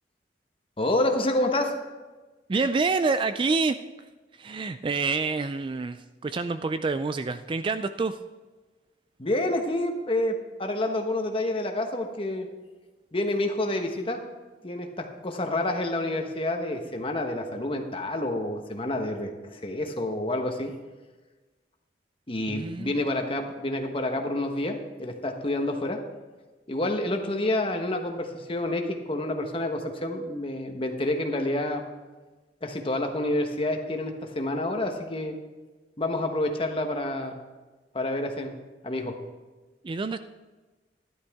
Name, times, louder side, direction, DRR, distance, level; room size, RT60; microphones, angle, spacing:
voice 1, 0.8-1.7 9.2-12.5 13.1-14.2 14.6-20.7 22.3-26.0 26.7-31.8 32.6-35.3 36.0-37.4 37.9-38.5 38.8-39.1, left 1 dB, 30° left, 4 dB, 1.1 m, -28 dB
voice 2, 2.5-3.8 4.4-8.2 22.5-23.0 39.8-40.3, right 4 dB, 30° right, 11 dB, 0.3 m, -27 dB
13.0 x 11.0 x 3.5 m, 1.2 s
head